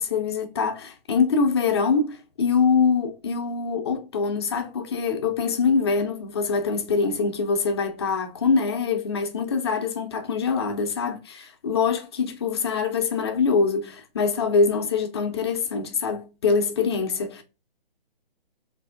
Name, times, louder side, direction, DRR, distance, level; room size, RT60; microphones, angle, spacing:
voice 1, 0.0-17.4, left 5 dB, 30° left, 0.4 m, -24 dB
4.1 x 2.5 x 2.3 m
hypercardioid pair, 145°, 30 cm